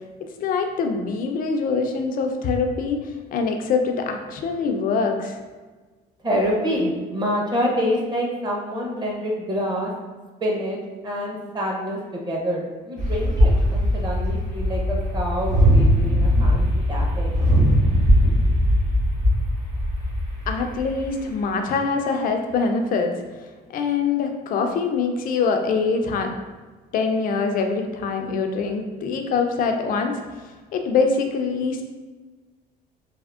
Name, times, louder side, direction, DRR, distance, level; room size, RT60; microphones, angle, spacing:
voice 1, 0.4-5.4 20.5-23.1 23.7-26.3 26.9-30.2 30.7-31.8, left 4 dB, 55° left, 5 dB, 0.4 m, -24 dB
voice 2, 6.2-9.9 10.4-10.8 11.0-17.3, equal, 25° right, -1 dB, 0.6 m, -26 dB
sound 1, 13.0-21.1, equal, 45° right, 1.2 m, -20 dB
3.4 x 2.0 x 2.3 m, 1.3 s
cardioid pair, 110°, 17 cm